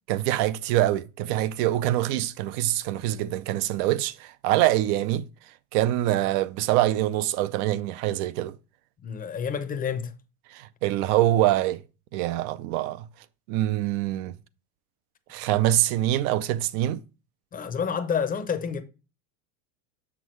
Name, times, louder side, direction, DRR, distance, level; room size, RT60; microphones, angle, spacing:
voice 1, 0.1-5.3 5.7-8.6 10.5-11.8 12.1-13.1 13.5-14.3 15.3-17.0, right 14 dB, 65° right, 0.6 m, -24 dB
voice 2, 9.0-10.1 17.5-18.8, left 7 dB, 20° left, 0.6 m, -29 dB
7.0 x 6.1 x 3.1 m
supercardioid pair, 135°, 48 cm